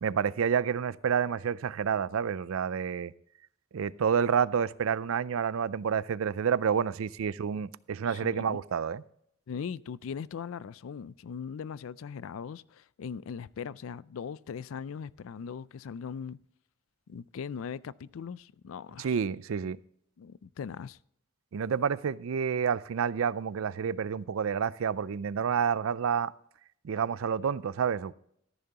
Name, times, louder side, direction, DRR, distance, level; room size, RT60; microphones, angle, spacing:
voice 1, 0.0-3.1 3.7-9.0 19.0-19.8 21.5-26.3 26.8-28.1, right 7 dB, 70° right, 0.4 m, -29 dB
voice 2, 8.0-8.6 9.5-16.4 17.1-19.2 20.2-21.0, left 6 dB, 70° left, 0.4 m, -40 dB
14.0 x 10.5 x 2.9 m
head